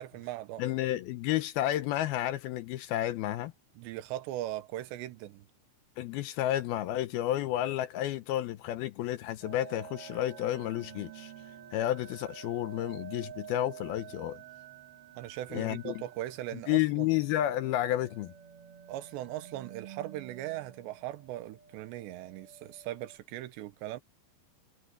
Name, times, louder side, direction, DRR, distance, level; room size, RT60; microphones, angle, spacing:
voice 1, 0.0-0.6 3.8-5.5 15.2-17.1 18.9-24.0, right 14 dB, 85° right, 3.2 m, -39 dB
voice 2, 0.6-3.5 6.0-11.3 11.7-14.4 15.5-15.9 16.7-18.3, left 13 dB, 75° left, 2.4 m, -31 dB
sound 1, 9.4-23.2, right 9 dB, 45° right, 2.2 m, -50 dB
omnidirectional pair, 4.9 m